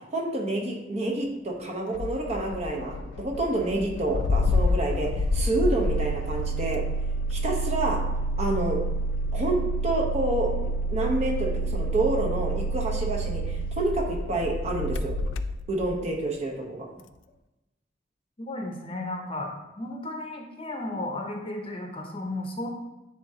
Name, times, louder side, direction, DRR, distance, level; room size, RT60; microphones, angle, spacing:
voice 1, 0.1-6.8 7.3-8.0 8.4-8.8 9.3-15.1 15.7-16.9, right 2 dB, 35° right, -1 dB, 1.0 m, -28 dB
Engine starting, 1.9-16.1, equal, 85° left, 0.3 m, -28 dB
voice 2, 18.4-22.7, left 1 dB, 30° left, 2 dB, 0.8 m, -34 dB
9.7 x 3.6 x 2.8 m, 1.0 s
head